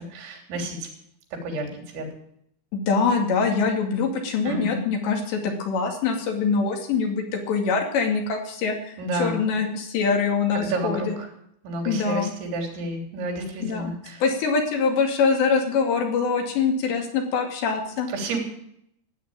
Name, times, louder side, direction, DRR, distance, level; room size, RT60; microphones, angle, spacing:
voice 1, 0.1-0.9 1.4-1.7 1.9-2.1 4.4-4.8 9.0-9.4 10.5-11.3 11.6-14.2 18.1-18.4, right 2 dB, 80° right, 1 dB, 5.8 m, -30 dB
voice 2, 2.7-11.2 11.9-12.3 13.6-13.9 14.2-18.1, left 5 dB, 70° left, 3 dB, 4.6 m, -24 dB
15.5 x 9.4 x 8.8 m, 0.72 s
omnidirectional pair, 5.3 m